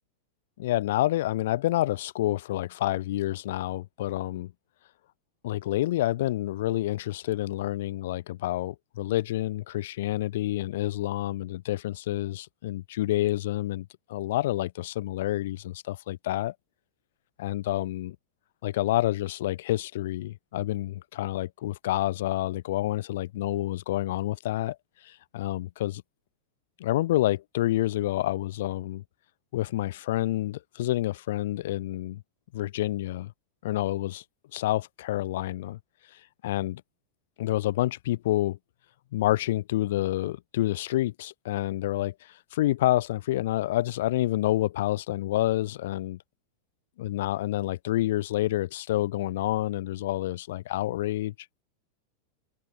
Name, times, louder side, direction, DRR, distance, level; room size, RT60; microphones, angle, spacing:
voice 1, 0.6-4.5 5.4-16.5 17.4-18.2 18.6-24.8 25.0-26.0 26.8-29.0 29.5-32.2 32.5-33.3 33.6-34.2 34.5-35.8 36.4-36.8 37.4-38.6 39.1-46.2 47.0-51.3, left 15 dB, 55° left, 1.0 m, -28 dB
figure-of-eight pair, 90°, 0 cm